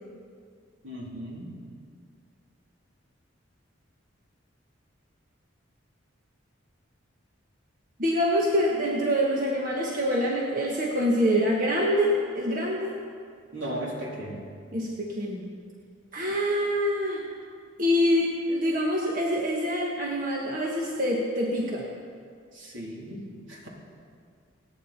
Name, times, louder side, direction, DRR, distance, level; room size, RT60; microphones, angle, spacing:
voice 1, 0.8-1.6 13.5-14.5 16.3-16.4 22.5-23.7, right 1 dB, 70° right, -3 dB, 3.6 m, -36 dB
voice 2, 8.0-12.9 14.7-15.5 16.1-17.2 17.8-21.9, equal, 45° right, -3 dB, 1.5 m, -25 dB
29.0 x 9.8 x 4.4 m, 2.2 s
head